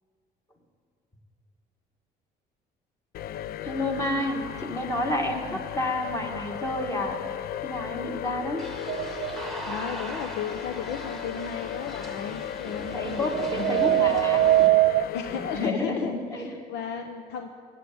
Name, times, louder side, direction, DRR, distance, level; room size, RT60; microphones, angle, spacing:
sound 1, 3.1-15.7, left 11 dB, 60° left, 0.4 m, -36 dB
voice 1, 3.6-7.2 7.6-8.7 12.6-14.7 15.3-16.5, left 1 dB, 20° left, 2 dB, 2.1 m, -30 dB
sound 2, 8.6-14.7, right 1 dB, ahead, 1.5 m, -41 dB
sound 3, 8.9-9.6 12.9-15.0, right 16 dB, 60° right, 0.5 m, -22 dB
voice 2, 9.7-14.1 15.1-17.5, left 7 dB, 90° left, 6 dB, 0.8 m, -34 dB
18.0 x 7.8 x 8.7 m, 2.2 s
cardioid pair, 110°, 17 cm